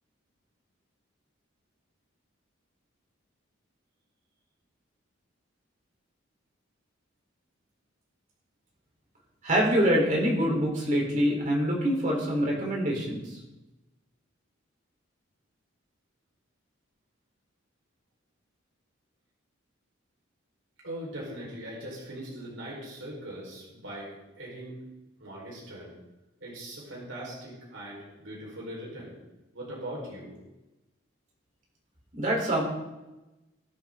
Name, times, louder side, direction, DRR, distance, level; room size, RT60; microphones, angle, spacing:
voice 1, 9.4-13.4 32.1-32.6, equal, 40° right, -2 dB, 4.0 m, -25 dB
voice 2, 20.8-24.8 25.2-25.9 26.4-29.1 29.5-30.3, right 1 dB, 70° right, -4 dB, 4.8 m, -40 dB
22.0 x 8.4 x 3.9 m, 1.0 s
head